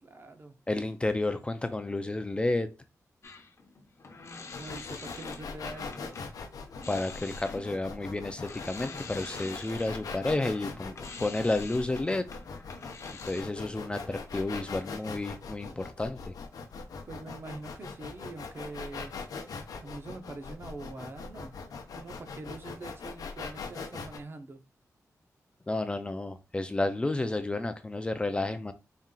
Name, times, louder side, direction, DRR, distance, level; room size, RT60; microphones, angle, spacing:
voice 1, 0.0-0.6 4.6-6.1 17.1-19.2 19.8-21.5 21.9-24.6, right 2 dB, 40° right, 0.6 m, -44 dB
voice 2, 0.7-2.7 6.9-12.3 13.2-16.3 25.7-28.7, left 2 dB, 20° left, 0.4 m, -31 dB
sound 1, 3.2-6.3 6.7-13.4, left 4 dB, 50° left, 0.8 m, -46 dB
sound 2, 4.5-24.2, left 4 dB, 85° left, 0.6 m, -41 dB
4.2 x 2.4 x 3.7 m
wide cardioid pair, 130°, 6 cm